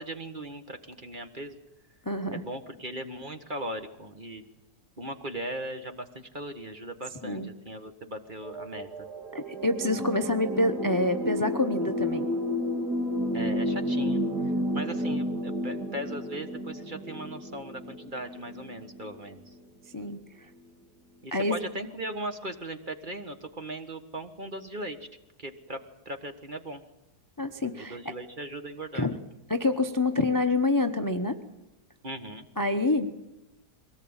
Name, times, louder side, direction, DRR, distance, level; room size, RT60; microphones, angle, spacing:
voice 1, 0.0-1.6 2.3-4.4 5.0-9.1 13.3-14.2 14.7-19.5 21.2-25.0 25.4-25.8 26.0-26.8 27.8-29.1 32.0-32.5, right 1 dB, 30° right, 7 dB, 1.5 m, -38 dB
voice 2, 2.1-2.4 7.2-7.5 9.3-12.3 19.9-20.2 21.3-21.5 27.4-28.0 28.9-29.1 29.5-31.4 32.6-33.1, left 2 dB, 15° left, 8 dB, 0.8 m, -27 dB
sound 1, 8.4-19.2 20.1-20.2, equal, 70° right, 2.4 m, -31 dB
23.0 x 18.0 x 8.9 m, 1.0 s
omnidirectional pair, 1.8 m